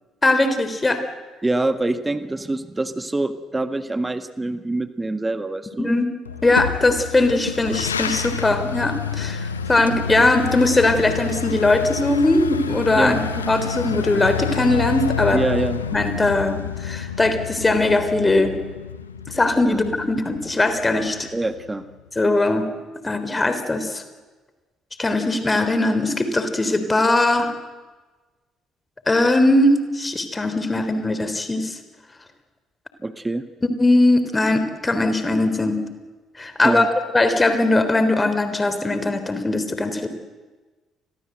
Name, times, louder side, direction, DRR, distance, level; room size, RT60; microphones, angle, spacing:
voice 1, 0.2-1.0 5.8-6.1 6.4-15.4 15.9-18.6 19.3-21.3 22.2-22.7 23.0-24.0 25.0-27.5 29.1-31.8 33.8-35.8 36.4-36.9 37.1-40.1, left 2 dB, 20° left, 10 dB, 3.6 m, -20 dB
voice 2, 1.4-5.9 13.0-13.2 15.3-15.8 19.6-19.8 21.3-21.8 33.0-33.4 36.6-36.9, right 2 dB, 15° right, 11 dB, 1.6 m, -25 dB
sound 1, 6.3-22.0, left 8 dB, 80° left, 1.0 m, -29 dB
29.5 x 22.5 x 8.0 m, 1.3 s
figure-of-eight pair, 45°, 0 cm